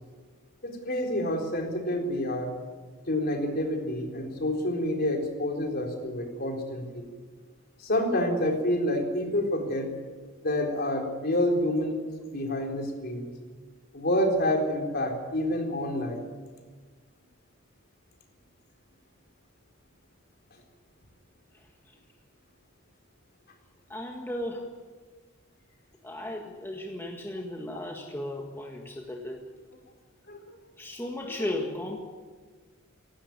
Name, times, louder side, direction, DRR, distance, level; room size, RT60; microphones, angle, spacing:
voice 1, 0.6-2.5 3.1-7.0 7.8-9.9 10.4-12.0 12.3-13.3 13.9-16.3 30.3-30.4 31.4-31.5, left 1 dB, 50° left, 3 dB, 4.1 m, -28 dB
voice 2, 23.9-24.8 26.0-29.4 30.8-32.0, left 1 dB, 10° left, 1 dB, 1.7 m, -35 dB
17.0 x 17.0 x 9.6 m, 1.4 s
head